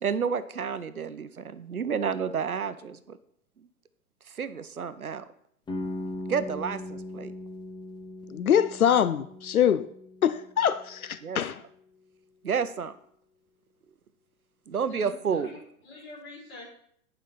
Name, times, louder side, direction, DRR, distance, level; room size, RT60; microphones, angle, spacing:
voice 1, 0.0-3.2 3.6-3.7 4.3-5.2 6.3-7.3 11.2-11.4 12.4-12.9 14.7-15.5, right 6 dB, 85° right, 0.8 m, -30 dB
sound 1, 5.7-11.4, left 1 dB, 10° left, 0.9 m, -39 dB
voice 2, 8.3-9.9 10.2-11.6, left 9 dB, 80° left, 0.6 m, -24 dB
voice 3, 14.9-16.7, left 3 dB, 25° left, 4.2 m, -46 dB
10.0 x 5.4 x 5.7 m
figure-of-eight pair, 105°, 42 cm